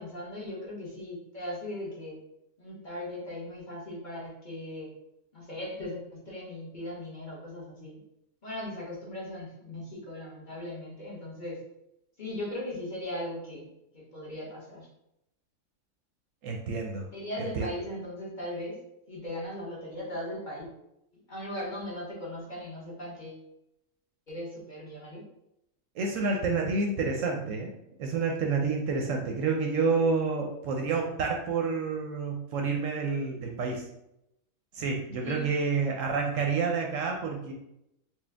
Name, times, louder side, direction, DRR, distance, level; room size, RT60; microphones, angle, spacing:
voice 1, 0.0-2.2 2.6-4.9 5.3-8.0 8.4-11.6 12.2-13.7 13.9-14.9 17.1-18.8 19.1-20.6 21.3-23.4 24.3-25.2 35.2-35.5, left 1 dB, 35° left, -6 dB, 1.2 m, -38 dB
voice 2, 16.4-17.1 17.4-17.7 25.9-27.7 28.0-33.8 34.7-37.5, right 4 dB, 70° right, 1 dB, 0.9 m, -29 dB
4.5 x 2.3 x 3.3 m, 0.82 s
omnidirectional pair, 1.5 m